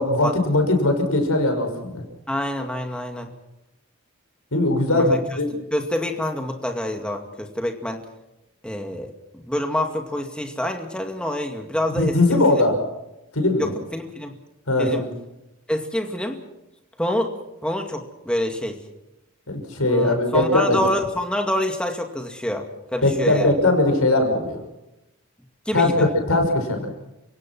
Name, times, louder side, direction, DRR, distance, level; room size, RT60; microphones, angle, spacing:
voice 1, 0.0-2.0 4.5-5.1 5.4-5.5 11.9-12.8 13.3-13.7 14.7-15.1 19.5-20.8 23.0-24.6 25.7-26.9, left 2 dB, 85° left, 4 dB, 5.8 m, -20 dB
voice 2, 2.3-3.3 4.9-5.4 5.7-8.1 8.6-12.6 13.6-14.4 14.8-15.1 15.7-16.4 17.0-17.3 17.6-18.8 19.9-23.6 25.7-26.0, left 1 dB, 5° left, 4 dB, 2.2 m, -27 dB
29.5 x 17.5 x 6.1 m, 0.94 s
head